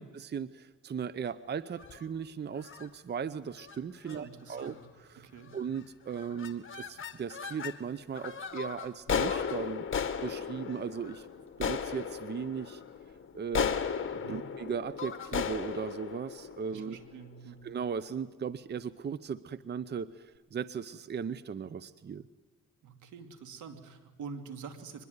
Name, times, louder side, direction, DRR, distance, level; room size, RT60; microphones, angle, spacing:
voice 1, 0.0-5.3 5.5-9.9 10.2-11.3 11.6-12.8 13.3-13.8 14.1-17.0 17.5-22.2, right 6 dB, 35° right, 16 dB, 0.7 m, -37 dB
sound 1, 1.7-2.1 2.6-2.9 3.6-3.8 4.1-4.2 4.5-4.9 5.5-5.8 6.1-7.8 8.2-17.3, left 7 dB, 40° left, 2.0 m, -36 dB
voice 2, 4.0-4.8 5.2-5.5 14.2-14.4 16.7-17.6 22.8-25.1, right 5 dB, 75° right, 7 dB, 2.8 m, -46 dB
24.0 x 21.0 x 9.6 m, 1.2 s
cardioid pair, 90°, 30 cm